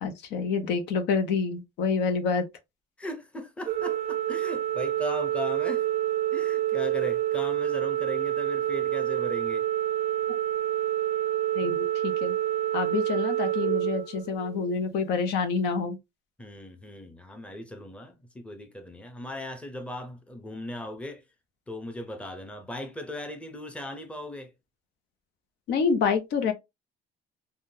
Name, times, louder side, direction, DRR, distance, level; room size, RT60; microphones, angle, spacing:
voice 1, 0.0-2.5 11.5-12.3 12.7-16.0 25.7-26.5, left 5 dB, 80° left, 0.7 m, -27 dB
voice 2, 3.0-5.8 6.3-9.7 16.4-21.2 21.7-24.5, left 1 dB, 5° left, 0.7 m, -38 dB
Organ, 3.7-14.7, right 13 dB, 40° right, 0.4 m, -28 dB
3.5 x 2.2 x 2.6 m
cardioid pair, 110°, 17 cm